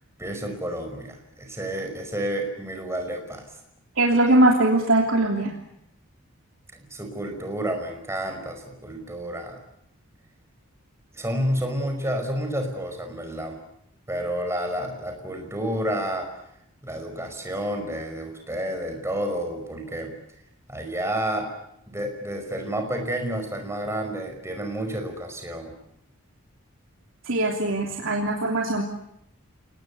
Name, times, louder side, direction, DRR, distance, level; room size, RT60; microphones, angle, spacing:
voice 1, 0.2-3.5 6.7-9.6 11.1-13.6 14.1-16.3 16.8-20.2 20.7-21.5 21.9-25.7, right 1 dB, 15° right, 5 dB, 5.2 m, -30 dB
voice 2, 4.0-5.5 27.2-28.8, right 1 dB, 70° right, 0 dB, 3.2 m, -21 dB
29.5 x 19.5 x 8.3 m, 0.78 s
head